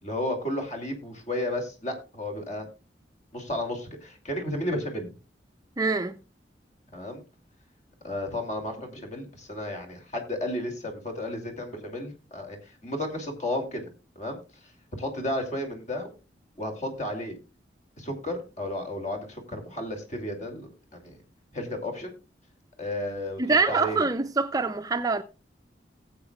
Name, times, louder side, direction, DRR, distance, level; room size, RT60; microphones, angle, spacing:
voice 1, 0.0-2.7 3.3-5.1 6.9-7.2 8.0-13.9 14.2-14.4 15.0-16.1 16.6-17.4 18.0-21.2 21.5-22.1 22.8-23.4 23.7-24.1, left 1 dB, 40° left, 2.7 m, -33 dB
voice 2, 5.8-6.2 23.4-25.2, right 4 dB, 20° right, 0.5 m, -25 dB
18.0 x 8.0 x 2.3 m
head